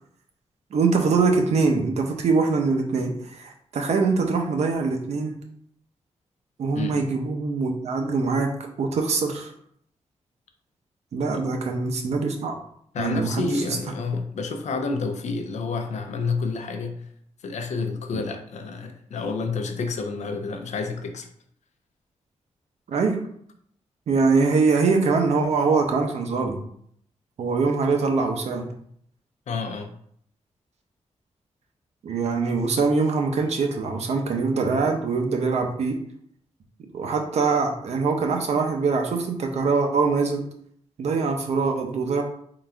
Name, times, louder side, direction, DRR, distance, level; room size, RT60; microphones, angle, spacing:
voice 1, 0.7-5.4 6.6-8.5 8.8-9.5 11.1-12.6 13.0-13.8 18.1-18.2 22.9-23.2 24.1-26.6 27.4-28.7 32.0-36.0 36.9-40.4 41.0-42.2, right 4 dB, 70° right, 3 dB, 0.7 m, -23 dB
voice 2, 6.7-7.1 11.3-11.4 12.9-17.0 17.4-21.3 29.5-29.9, left 4 dB, 80° left, 5 dB, 0.6 m, -29 dB
3.9 x 2.4 x 4.4 m, 0.66 s
wide cardioid pair, 170°, 12 cm